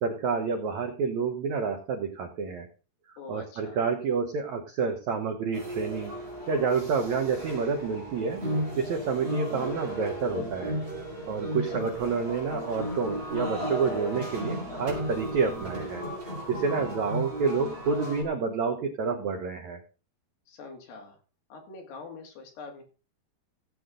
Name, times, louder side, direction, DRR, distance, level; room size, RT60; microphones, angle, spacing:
voice 1, 0.0-2.7 3.3-6.1 6.5-8.4 8.8-10.7 11.3-19.8, right 5 dB, 85° right, 5 dB, 1.6 m, -29 dB
voice 2, 3.2-3.9 11.5-11.8 20.5-21.2 21.5-22.8, left 4 dB, 70° left, 2 dB, 4.4 m, -44 dB
sound 1, 5.5-18.2, equal, 15° right, 4.4 m, -35 dB
16.5 x 8.0 x 3.8 m, 0.35 s
omnidirectional pair, 4.9 m